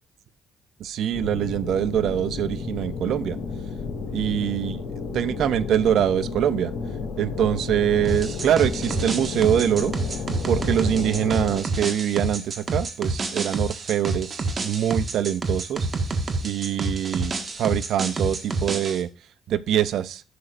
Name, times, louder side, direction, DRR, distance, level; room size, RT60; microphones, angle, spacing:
voice 1, 0.8-3.4 4.1-4.8 5.1-6.7 7.2-9.9 10.5-15.9 16.4-19.1 19.5-20.2, right 10 dB, 75° right, 16 dB, 0.6 m, -24 dB
sound 1, 1.1-11.6, left 4 dB, 70° left, 2.6 m, -32 dB
sound 2, 8.0-19.0, right 3 dB, 40° right, 1.6 m, -28 dB
11.0 x 6.5 x 2.5 m, 0.33 s
cardioid pair, 90°, 0 cm